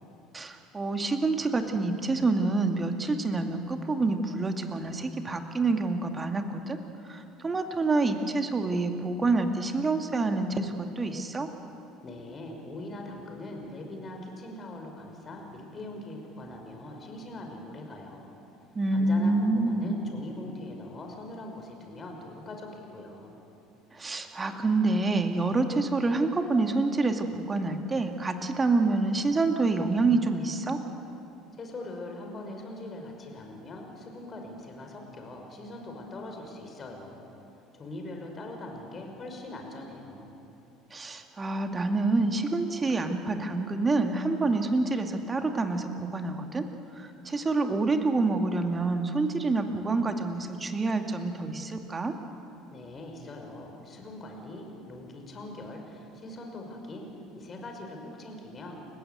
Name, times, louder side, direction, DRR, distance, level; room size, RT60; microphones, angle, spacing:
voice 1, 0.3-6.8 7.1-11.5 18.8-20.0 23.9-30.8 40.9-46.7 47.0-52.2, right 3 dB, 25° right, 6 dB, 2.2 m, -27 dB
voice 2, 12.0-18.3 18.9-23.4 31.6-37.2 37.7-40.3 52.7-57.1 57.3-58.8, left 2 dB, 30° left, 2 dB, 5.4 m, -42 dB
29.5 x 16.0 x 8.1 m, 2.9 s
figure-of-eight pair, 60°, 0 cm